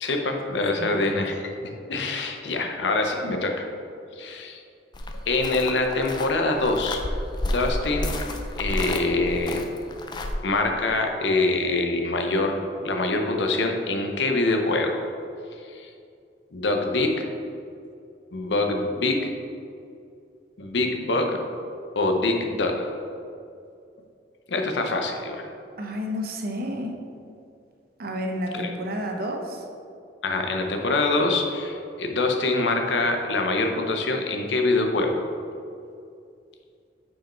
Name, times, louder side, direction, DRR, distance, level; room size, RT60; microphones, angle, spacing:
voice 1, 0.0-3.7 4.2-4.6 5.3-7.0 7.4-8.1 8.6-9.6 10.4-15.0 15.7-15.9 16.5-17.3 18.3-19.3 20.6-21.4 22.0-22.9 24.5-25.5 28.5-28.7 30.2-35.2, left 2 dB, 80° left, 4 dB, 0.7 m, -25 dB
sound 1, 4.9-10.3, left 1 dB, 25° left, 0.4 m, -31 dB
voice 2, 25.8-26.9 28.0-29.7, equal, 55° right, 2 dB, 0.8 m, -30 dB
6.1 x 4.8 x 4.3 m, 2.5 s
head